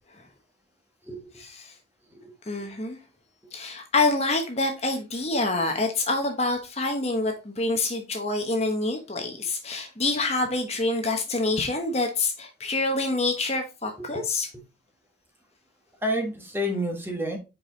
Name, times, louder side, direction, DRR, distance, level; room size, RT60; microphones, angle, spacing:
voice 1, 1.4-1.7 2.5-3.0 3.5-14.5, left 2 dB, 35° left, 1.0 m, -26 dB
voice 2, 16.0-17.4, equal, 10° right, 1.3 m, -29 dB
5.3 x 4.7 x 3.9 m
head